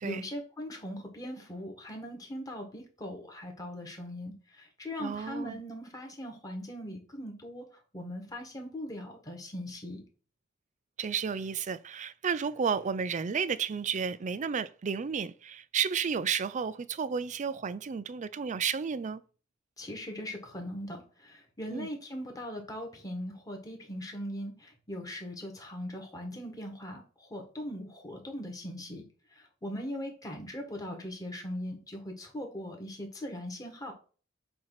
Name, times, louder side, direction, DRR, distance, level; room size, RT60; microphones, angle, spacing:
voice 1, 0.0-10.0 19.8-29.0 29.3-33.9, equal, 20° left, 1.6 m, -40 dB
voice 2, 5.0-5.6 11.0-19.2 21.7-21.9, right 6 dB, 40° right, 0.4 m, -32 dB
7.6 x 2.8 x 5.8 m
head